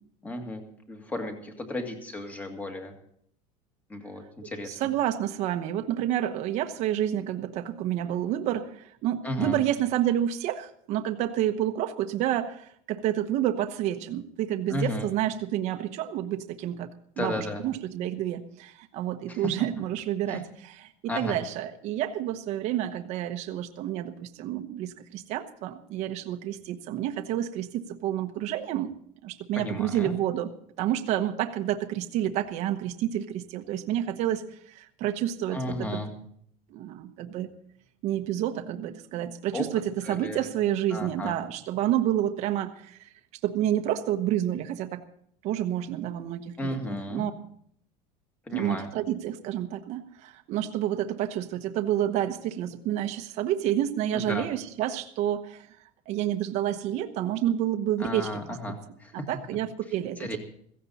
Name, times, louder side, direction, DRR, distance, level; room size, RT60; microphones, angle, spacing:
voice 1, 0.2-0.6 0.9-2.9 3.9-4.8 9.2-9.6 14.7-15.1 17.2-17.6 19.3-19.5 20.3-20.4 21.1-21.4 29.5-30.1 35.5-36.1 39.5-39.7 40.0-40.5 40.9-41.3 46.6-47.3 48.5-48.9 54.1-54.5 58.0-59.3 60.2-60.4, left 1 dB, 10° left, 4 dB, 2.0 m, -34 dB
voice 2, 4.6-16.9 17.2-28.9 29.2-30.5 30.8-36.0 36.7-37.5 38.0-43.1 43.4-45.1 45.4-47.3 48.5-55.7 56.1-58.6 59.1-60.4, right 11 dB, 40° right, 6 dB, 1.1 m, -29 dB
16.0 x 16.0 x 4.2 m, 0.65 s
cardioid pair, 165°, 17 cm